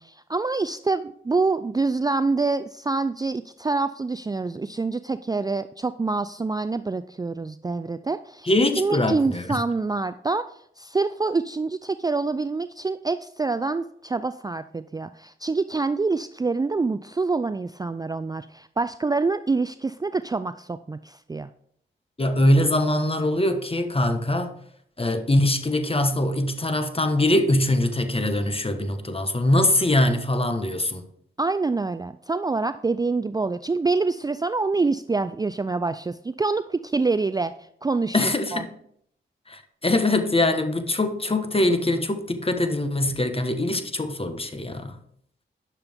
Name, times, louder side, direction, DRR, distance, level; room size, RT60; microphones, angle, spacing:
voice 1, 0.0-8.5 8.8-10.4 10.8-21.5 31.4-37.5 37.8-38.2 38.5-38.6, right 3 dB, 20° right, 0.4 m, -26 dB
voice 2, 8.4-9.6 22.2-24.5 25.0-31.0 38.1-38.7 39.5-45.0, left 1 dB, 30° left, 1.3 m, -23 dB
9.8 x 6.8 x 3.6 m
supercardioid pair, 45°, 21 cm